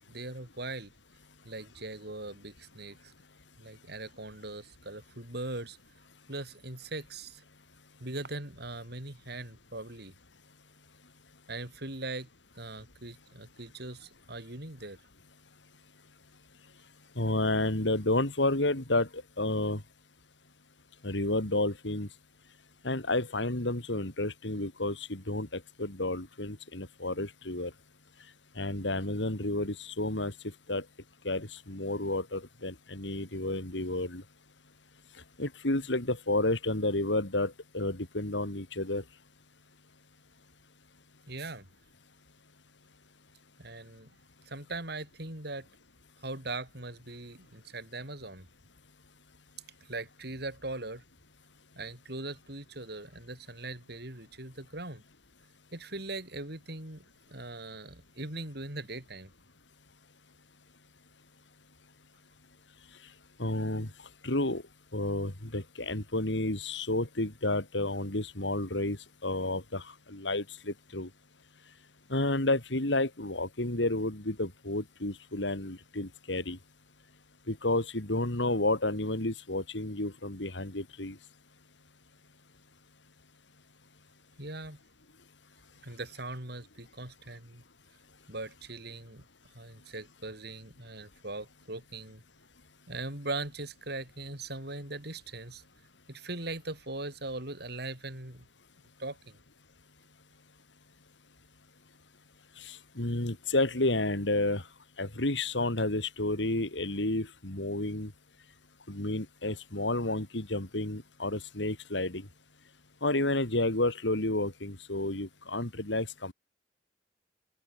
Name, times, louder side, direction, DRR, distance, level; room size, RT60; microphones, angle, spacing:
voice 1, 0.1-0.9 1.4-3.1 3.6-5.8 6.3-7.4 8.0-10.1 11.5-12.3 12.6-15.0 41.3-41.7 43.6-44.1 44.5-45.7 46.2-48.5 49.8-51.0 51.8-55.0 55.7-59.3 84.4-84.8 85.8-87.6 88.3-89.2 89.5-92.2 92.9-95.6 96.1-98.5 99.0-99.4, right 2 dB, 65° right, 7.3 m, -40 dB
voice 2, 17.2-19.8 21.0-22.1 22.8-27.7 28.6-30.3 30.7-30.8 31.2-34.2 35.4-39.0 63.4-63.9 64.2-64.6 64.9-71.1 72.1-76.6 77.5-81.2 102.6-104.6 105.0-108.1 108.9-112.3 113.0-116.3, left 2 dB, 90° left, 3.7 m, -31 dB
head